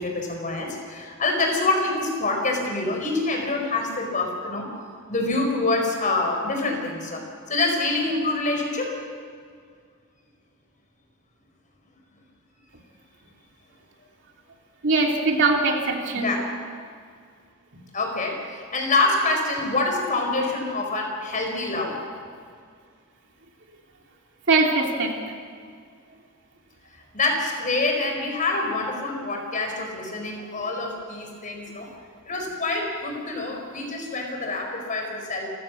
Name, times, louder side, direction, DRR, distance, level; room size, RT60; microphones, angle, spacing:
voice 1, 0.0-4.7 5.1-7.2 7.5-9.0 16.1-16.5 17.9-22.0 27.1-31.9 32.3-35.5, left 2 dB, 40° left, 2 dB, 4.9 m, -26 dB
voice 2, 14.8-16.3 24.5-25.1, right 3 dB, 60° right, 1 dB, 2.9 m, -21 dB
28.5 x 15.5 x 6.4 m, 2.1 s
head